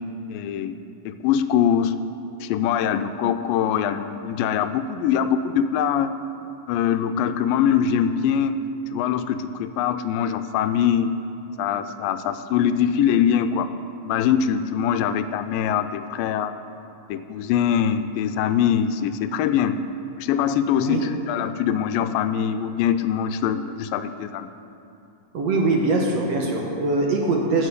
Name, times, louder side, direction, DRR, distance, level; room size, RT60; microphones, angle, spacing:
voice 1, 0.3-0.8 1.1-1.9 2.4-6.1 6.7-8.6 8.9-11.1 11.6-13.7 14.0-16.5 17.1-19.8 20.2-24.5, left 8 dB, 90° left, 10 dB, 2.3 m, -23 dB
voice 2, 25.3-27.7, right 2 dB, 60° right, -1 dB, 2.0 m, -22 dB
16.0 x 7.9 x 6.7 m, 2.7 s
omnidirectional pair, 4.0 m